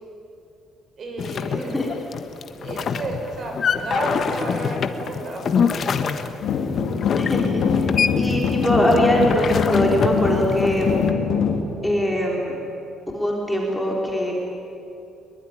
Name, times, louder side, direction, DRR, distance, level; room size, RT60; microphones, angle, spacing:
voice 1, 1.0-1.8 2.6-6.3 8.1-8.2, right 2 dB, 40° right, 2 dB, 6.0 m, -32 dB
sound 1, 1.2-11.1, left 6 dB, 40° left, 1.3 m, -26 dB
voice 2, 1.5-1.9 7.2-7.9 8.2-11.1 11.8-12.5 13.1-14.3, equal, 5° left, -2 dB, 3.4 m, -22 dB
sound 2, 6.4-11.6, left 6 dB, 65° left, 3.3 m, -23 dB
24.0 x 22.5 x 10.0 m, 2.8 s
cardioid pair, 150°, 0 cm